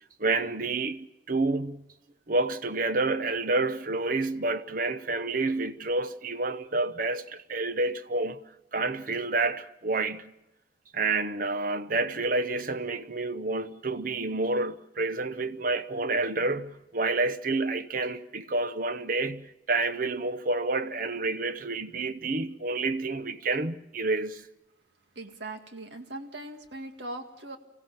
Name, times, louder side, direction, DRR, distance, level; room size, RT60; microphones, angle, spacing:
voice 1, 0.2-1.9 2.3-8.4 8.7-10.3 10.9-24.5, right 3 dB, 55° right, 0.9 m, -29 dB
voice 2, 25.2-27.6, right 2 dB, 85° right, 2.0 m, -40 dB
25.0 x 16.0 x 7.4 m
head